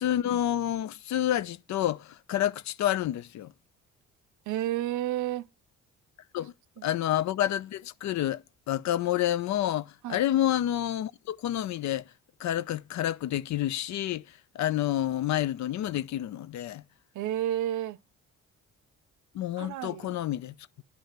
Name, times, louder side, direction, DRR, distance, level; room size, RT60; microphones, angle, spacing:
voice 1, 0.0-3.5 6.3-6.5 6.8-12.1 12.4-16.8 19.3-20.8, left 12 dB, 65° left, 0.6 m, -29 dB
voice 2, 4.5-5.5 6.8-6.9 10.0-10.2 17.1-18.0 19.6-20.1, right 12 dB, 80° right, 0.6 m, -31 dB
10.0 x 3.4 x 6.5 m
cardioid pair, 90°, 30 cm